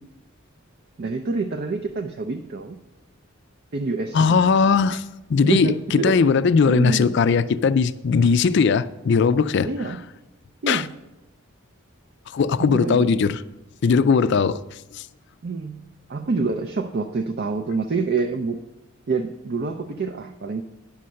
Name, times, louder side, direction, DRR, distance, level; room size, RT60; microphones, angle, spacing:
voice 1, 1.0-2.8 3.7-4.4 4.9-5.0 5.4-6.2 6.7-7.2 9.6-10.0 10.6-10.9 12.6-13.1 15.4-15.8 16.1-18.6 19.1-20.6, right 4 dB, 50° right, 0.4 m, -27 dB
voice 2, 4.1-5.0 5.3-9.7 10.7-10.8 12.3-13.4 13.8-14.6 14.9-15.0, left 5 dB, 55° left, 0.3 m, -19 dB
10.5 x 5.6 x 6.3 m
head